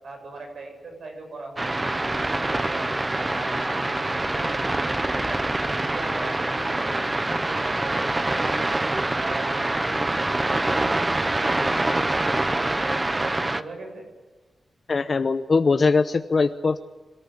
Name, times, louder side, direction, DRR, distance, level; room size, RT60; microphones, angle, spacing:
voice 1, 0.0-5.4 5.7-11.1 11.4-12.8 13.0-14.1, right 3 dB, 75° right, 3 dB, 7.7 m, -40 dB
sound 1, 1.6-13.6, right 2 dB, 20° right, 0.9 m, -25 dB
voice 2, 14.9-16.8, left 4 dB, 45° left, 8 dB, 0.8 m, -21 dB
26.5 x 14.5 x 9.7 m, 1.2 s
wide cardioid pair, 115°, 0 cm